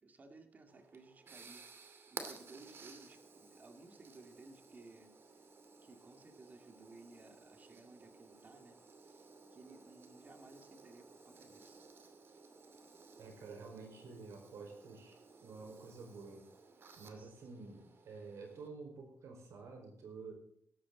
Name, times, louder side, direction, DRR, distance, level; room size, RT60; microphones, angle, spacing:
voice 1, 0.0-5.1 5.8-8.8 9.0-11.8 17.2-17.7, right 3 dB, 35° right, 6 dB, 2.3 m, -58 dB
sound 1, 0.7-18.7, right 4 dB, 50° right, 2.5 m, -56 dB
voice 2, 13.2-16.5 17.0-20.3, right 4 dB, 70° right, 3 dB, 4.9 m, -50 dB
17.5 x 13.5 x 4.0 m, 0.64 s
wide cardioid pair, 140°, 5 cm